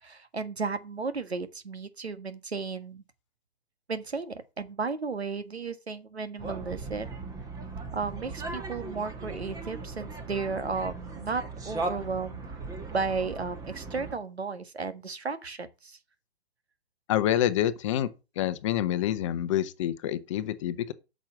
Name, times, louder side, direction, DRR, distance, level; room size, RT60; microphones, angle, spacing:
voice 1, 0.0-3.0 3.9-7.1 7.9-12.6 12.9-16.0, right 4 dB, 75° right, 1.6 m, -34 dB
sound 1, 6.4-14.2, right 3 dB, 10° right, 1.5 m, -38 dB
voice 2, 17.1-18.1 18.4-20.9, left 12 dB, 30° left, 0.8 m, -27 dB
8.8 x 6.3 x 7.1 m
figure-of-eight pair, 125°, 32 cm